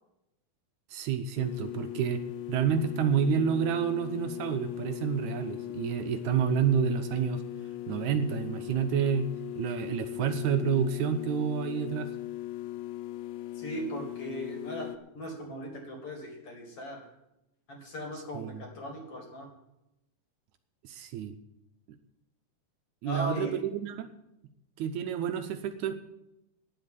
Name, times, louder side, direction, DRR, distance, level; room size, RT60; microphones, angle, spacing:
voice 1, 0.9-2.2 2.5-7.4 7.9-9.3 9.6-12.1 18.3-18.6 20.8-21.4 23.0-24.1 24.8-26.0, right 7 dB, 75° right, 8 dB, 1.9 m, -29 dB
sound 1, 1.4-15.0, left 15 dB, 75° left, 2.2 m, -39 dB
voice 2, 13.6-14.9 15.1-17.1 17.7-19.5 23.0-23.5, equal, 45° left, 2 dB, 3.0 m, -38 dB
10.0 x 7.9 x 9.6 m, 0.88 s
omnidirectional pair, 3.7 m